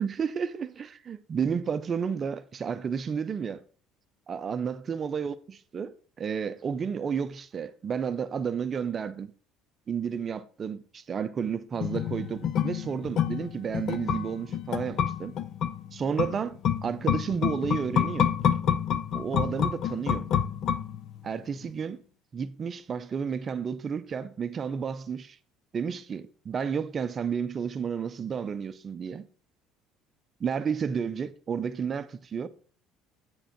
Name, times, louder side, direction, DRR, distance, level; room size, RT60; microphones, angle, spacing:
voice 1, 0.0-3.6 4.3-9.3 9.9-15.4 15.9-18.4 19.1-20.3 21.2-22.0 22.3-25.4 25.7-29.3 30.4-32.5, right 6 dB, 30° right, 0.6 m, -32 dB
sound 1, 11.8-21.3 21.6-21.7, left 9 dB, 45° left, 0.5 m, -28 dB
8.7 x 5.0 x 5.1 m
cardioid pair, 145°, 0 cm